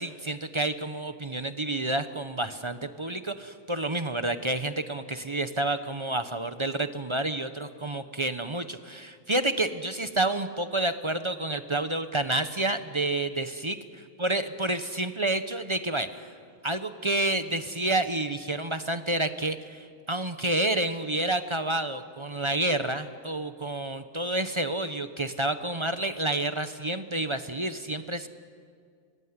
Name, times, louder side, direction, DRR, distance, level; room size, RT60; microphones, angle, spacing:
voice 1, 0.0-13.8 14.2-16.3 16.6-28.3, right 2 dB, 25° right, 10 dB, 0.7 m, -29 dB
25.0 x 20.5 x 9.7 m, 2.1 s
omnidirectional pair, 1.5 m